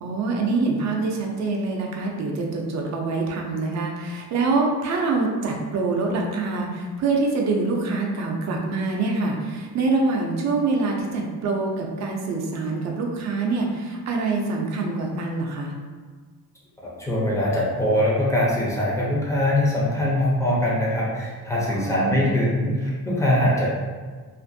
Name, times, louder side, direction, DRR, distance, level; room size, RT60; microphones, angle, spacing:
voice 1, 0.0-15.7 21.8-22.4, right 3 dB, 50° right, 0 dB, 0.4 m, -25 dB
voice 2, 16.8-23.7, left 1 dB, 10° left, -6 dB, 0.5 m, -22 dB
2.5 x 2.5 x 2.6 m, 1.5 s
wide cardioid pair, 160°, 37 cm